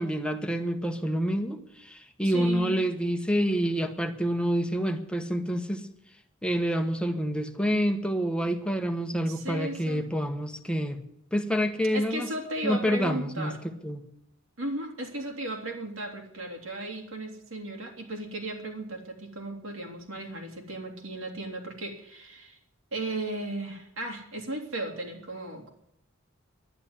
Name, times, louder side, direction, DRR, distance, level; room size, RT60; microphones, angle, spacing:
voice 1, 0.0-5.9 6.4-11.0 11.3-12.3 12.6-14.0, equal, 5° left, 6 dB, 1.0 m, -28 dB
voice 2, 2.2-2.8 9.3-10.0 11.9-13.6 14.6-22.6 22.9-25.7, right 1 dB, 80° right, 2 dB, 3.3 m, -35 dB
11.0 x 10.5 x 9.6 m, 0.78 s
head